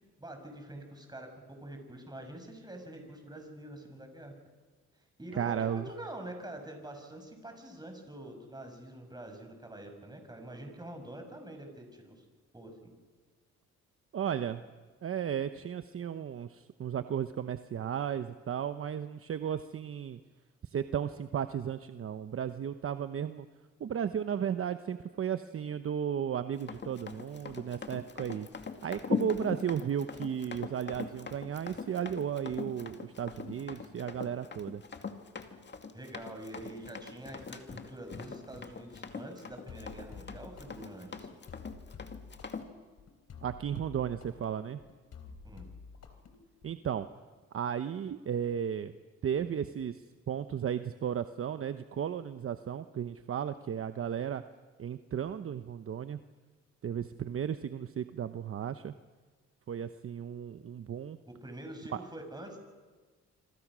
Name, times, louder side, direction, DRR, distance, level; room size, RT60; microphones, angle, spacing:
voice 1, 0.2-4.3 4.9-12.2 12.5-12.9 35.9-41.4 45.4-45.6 61.3-62.6, right 1 dB, 15° right, 5 dB, 6.4 m, -46 dB
voice 2, 5.4-5.9 14.1-14.6 15.0-20.2 20.6-23.5 23.8-28.5 28.8-34.8 43.4-44.8 46.6-47.1 47.5-48.9 49.2-54.4 54.8-56.2 56.8-58.9 59.7-61.2 61.9-62.0, right 8 dB, 45° right, 10 dB, 0.9 m, -34 dB
Run, 26.6-42.7, left 5 dB, 35° left, 2.3 m, -41 dB
sound 1, 39.7-46.8, left 5 dB, 55° left, 3.8 m, -50 dB
26.5 x 25.0 x 6.3 m, 1.4 s
cardioid pair, 90°, 30 cm